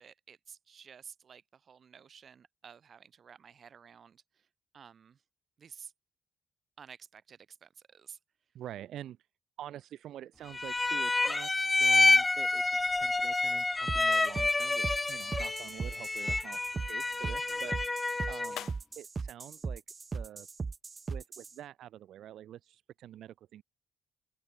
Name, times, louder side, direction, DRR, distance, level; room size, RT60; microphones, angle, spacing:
voice 1, 0.0-4.2 4.7-5.2 5.6-5.9 6.8-8.2 17.5-17.8 18.5-18.6, right 7 dB, 50° right, 3.9 m, -52 dB
voice 2, 8.5-9.2 9.6-11.5 11.8-17.8 18.3-18.7 19.0-19.8 20.1-20.5 21.1-23.6, right 11 dB, 75° right, 2.6 m, -46 dB
sound 1, 10.5-18.6, left 3 dB, 20° left, 0.6 m, -28 dB
sound 2, 13.9-21.5, right 4 dB, 35° right, 2.1 m, -38 dB
sound 3, 18.4-20.9, left 12 dB, 75° left, 1.3 m, -53 dB
open air
cardioid pair, 90°, 0 cm